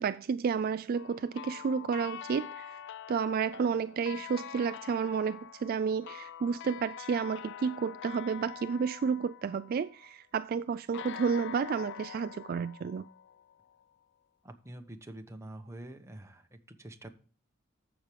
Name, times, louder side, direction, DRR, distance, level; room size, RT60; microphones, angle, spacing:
voice 1, 0.0-2.8 3.1-13.1, right 6 dB, 50° right, 0.3 m, -31 dB
sound 1, 0.9-10.2 10.9-13.8, left 9 dB, 60° left, 0.4 m, -45 dB
voice 2, 14.4-17.1, right 1 dB, 15° right, 1.1 m, -46 dB
14.5 x 6.0 x 3.3 m
head